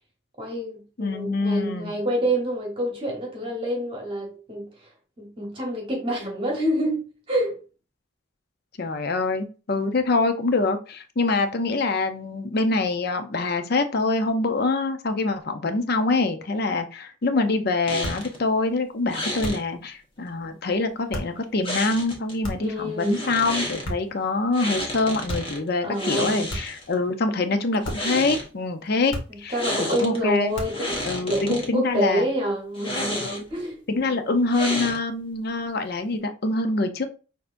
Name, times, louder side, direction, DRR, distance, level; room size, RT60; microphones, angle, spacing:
voice 1, 0.4-4.9 5.2-7.6 22.6-23.3 25.8-26.5 29.3-34.1, equal, 25° right, 1.1 m, -27 dB
voice 2, 1.0-1.9 8.8-29.6 29.9-30.5 31.0-32.3 33.2-33.4 33.9-37.1, left 3 dB, 50° left, 0.6 m, -25 dB
sound 1, 17.9-18.4 19.1-19.6 21.6-22.3 23.0-23.9 24.5-25.6 25.9-26.9 27.7-28.5 29.5-30.2 30.5-31.7 32.7-33.6 34.5-35.2, left 1 dB, 25° left, 1.3 m, -31 dB
sound 2, 18.0-18.3 19.4-19.8 21.1-21.4 22.4-22.8 23.8-24.2 25.3-25.6 26.5-26.9 27.8-28.2 29.1-29.5 30.5-30.9, equal, 65° left, 1.7 m, -34 dB
6.4 x 2.8 x 2.6 m
head